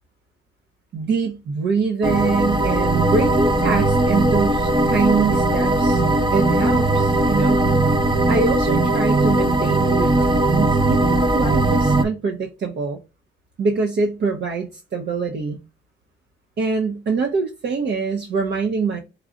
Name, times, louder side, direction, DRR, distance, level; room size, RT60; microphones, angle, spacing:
voice 1, 0.9-6.0 6.3-7.6 8.3-13.0 13.6-15.6 16.6-19.0, right 4 dB, 60° right, 0.9 m, -24 dB
sound 1, 2.0-12.0, right 2 dB, 25° right, 0.8 m, -18 dB
4.7 x 2.4 x 3.9 m
cardioid pair, 90°, 20 cm